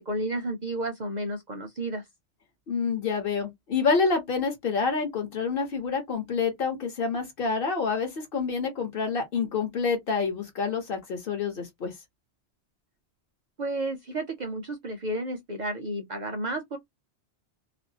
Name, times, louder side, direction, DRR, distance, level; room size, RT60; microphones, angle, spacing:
voice 1, 0.1-2.0 13.6-16.8, right 1 dB, 50° right, 0.5 m, -32 dB
voice 2, 2.7-11.9, left 5 dB, 55° left, 1.0 m, -28 dB
2.5 x 2.0 x 2.7 m
omnidirectional pair, 1.2 m